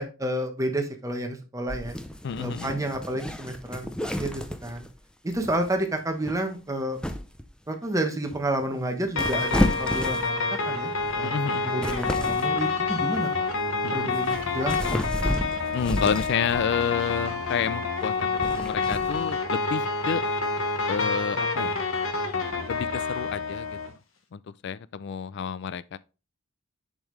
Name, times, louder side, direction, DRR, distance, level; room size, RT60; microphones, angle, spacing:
voice 1, 0.0-2.0 2.4-4.9 5.2-7.0 7.7-11.3 11.6-13.3 13.9-15.2, right 1 dB, 15° right, 1.1 m, -30 dB
sound 1, 1.7-5.0 5.3-5.7 6.2-6.5 7.0-7.5 8.3-8.6 9.1-10.5 11.0-11.2 11.6-12.6 13.4-13.6 14.0-16.6 17.2-17.5 18.2-19.3, left 1 dB, 5° left, 0.6 m, -31 dB
voice 2, 2.2-2.7 11.2-11.6 13.8-14.2 15.7-20.2 20.9-21.7 22.7-23.8 24.3-26.0, left 7 dB, 60° left, 0.4 m, -29 dB
sound 2, 9.2-23.9, left 4 dB, 90° left, 1.2 m, -28 dB
7.1 x 5.3 x 3.2 m
head